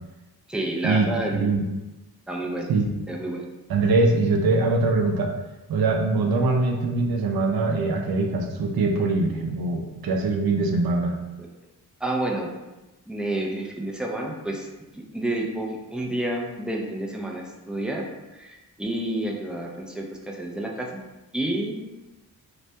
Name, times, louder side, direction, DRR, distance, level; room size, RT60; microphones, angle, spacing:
voice 1, 0.5-1.5 2.3-2.7 3.1-3.4 12.0-12.5 13.1-14.7 14.9-18.0 18.3-21.0 21.3-21.8, right 1 dB, ahead, -1 dB, 0.3 m, -29 dB
voice 2, 1.3-1.6 2.7-2.9 3.7-5.3 5.7-11.2, right 3 dB, 70° right, 2 dB, 0.5 m, -22 dB
2.2 x 2.1 x 2.7 m, 1.0 s
cardioid pair, 75°, 38 cm